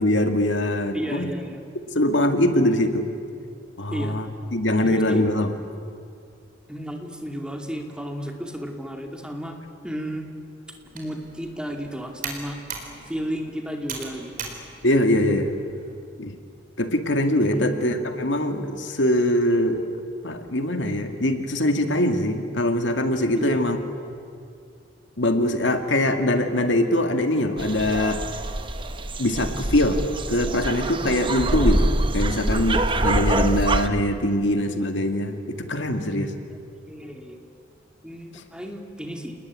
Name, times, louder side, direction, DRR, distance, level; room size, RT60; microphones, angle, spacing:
voice 1, 0.0-1.3 1.9-3.1 3.8-5.5 14.8-15.6 16.2-16.3 16.8-19.8 20.2-23.8 25.2-28.2 29.2-30.0 30.3-36.3, left 1 dB, 75° left, 6 dB, 2.1 m, -22 dB
voice 2, 0.9-1.6 3.9-4.2 4.8-5.2 6.7-9.6 9.8-10.3 10.7-12.6 13.0-14.5 17.4-17.9 23.3-23.7 36.5-36.6 36.9-37.4 38.0-39.3, equal, 5° right, 3 dB, 2.4 m, -33 dB
Computer keyboard, 10.8-15.9, right 5 dB, 50° right, 4.4 m, -39 dB
sound 1, 27.6-33.9, right 2 dB, 25° right, 1.1 m, -25 dB
29.0 x 20.0 x 9.6 m, 2.4 s
head